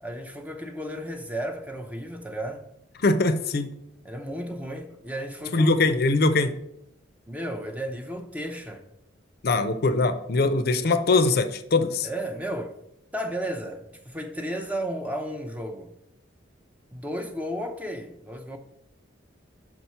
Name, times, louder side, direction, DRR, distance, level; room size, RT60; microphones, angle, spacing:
voice 1, 0.0-2.6 4.0-5.8 7.3-8.8 12.0-12.7 13.1-15.9 16.9-18.6, equal, 10° right, 0.5 m, -33 dB
voice 2, 3.0-3.7 5.5-6.5 9.4-12.1, left 3 dB, 50° left, 0.5 m, -22 dB
6.3 x 4.4 x 5.5 m
head